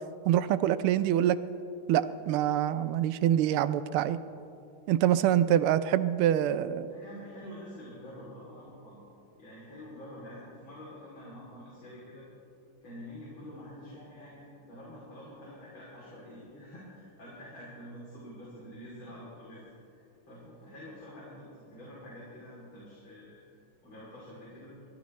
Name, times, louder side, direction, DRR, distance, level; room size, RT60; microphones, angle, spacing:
voice 1, 0.2-1.4 1.9-4.2 4.9-6.9, right 11 dB, 90° right, 13 dB, 1.5 m, -25 dB
voice 2, 6.9-9.0 9.4-12.3 12.8-23.4 23.8-24.8, equal, 65° left, -7 dB, 3.9 m, -47 dB
29.5 x 13.0 x 3.2 m, 2.7 s
omnidirectional pair, 2.3 m